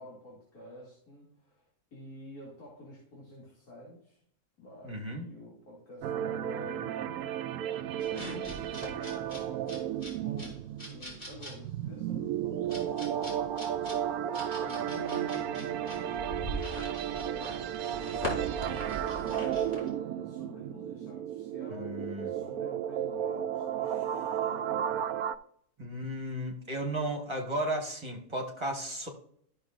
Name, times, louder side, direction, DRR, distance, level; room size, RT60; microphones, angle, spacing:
voice 1, 0.0-4.2 4.6-7.4 8.1-13.5 14.2-18.3 19.2-25.2, left 1 dB, 70° left, -5 dB, 3.0 m, -49 dB
voice 2, 4.8-5.3 21.7-22.3 25.8-29.1, right 1 dB, 20° right, 1 dB, 1.4 m, -34 dB
sound 1, 6.0-25.4, right 10 dB, 75° right, 1.0 m, -34 dB
sound 2, 8.0-19.9, equal, 25° left, 3.7 m, -42 dB
13.0 x 6.4 x 2.5 m, 0.67 s
omnidirectional pair, 1.6 m